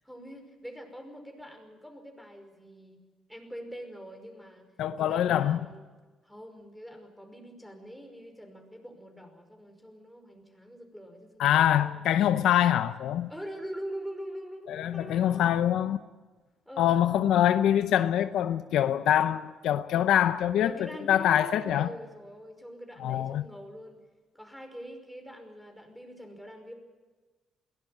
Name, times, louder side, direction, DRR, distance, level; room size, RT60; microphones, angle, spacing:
voice 1, 0.0-3.0 3.3-4.7 5.0-5.9 6.2-12.0 13.3-15.6 16.7-17.0 20.6-24.0 24.3-26.7, equal, ahead, 5.5 m, -44 dB
voice 2, 4.8-5.7 11.4-13.3 14.7-16.0 16.8-21.9 23.0-23.4, left 11 dB, 80° left, 0.7 m, -24 dB
22.0 x 17.5 x 9.0 m
cardioid pair, 90°, 0 cm